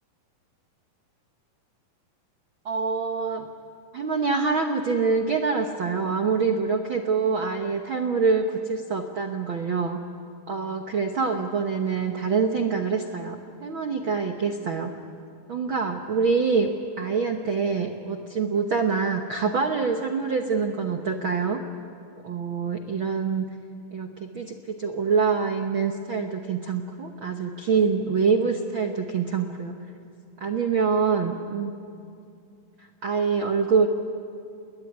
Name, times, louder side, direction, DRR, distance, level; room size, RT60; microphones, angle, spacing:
voice 1, 2.6-3.5 3.9-10.0 10.5-14.9 15.5-21.6 22.2-23.5 23.9-29.7 30.4-31.7 33.0-33.9, right 5 dB, 75° right, 4 dB, 1.1 m, -25 dB
29.0 x 21.0 x 9.5 m, 2.5 s
omnidirectional pair, 4.1 m